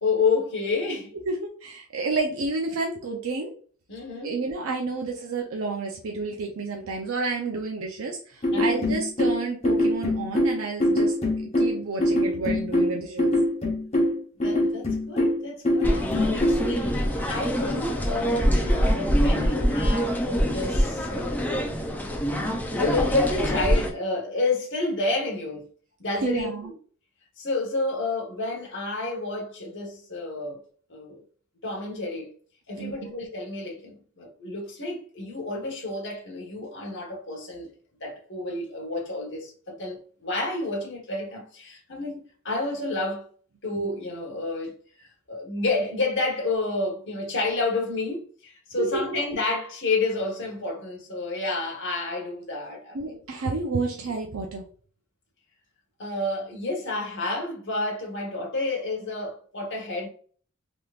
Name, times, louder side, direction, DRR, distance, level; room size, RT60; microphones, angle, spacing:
voice 1, 0.0-1.1 3.9-4.4 8.5-9.0 14.4-21.5 22.8-25.7 26.0-26.7 27.4-30.6 30.9-31.2 31.6-32.3 32.7-37.7 38.0-42.2 42.4-43.2 43.6-53.2 56.0-60.1, left 3 dB, 60° left, 1.2 m, -30 dB
voice 2, 1.3-3.5 4.2-11.1 11.6-13.4 26.2-26.7 32.8-33.0 48.8-49.0 52.9-54.6, right 3 dB, 80° right, 0.6 m, -30 dB
sound 1, 8.4-16.7, left 1 dB, 30° left, 0.9 m, -23 dB
sound 2, 15.8-23.9, equal, 10° left, 0.4 m, -24 dB
3.5 x 2.9 x 2.4 m
head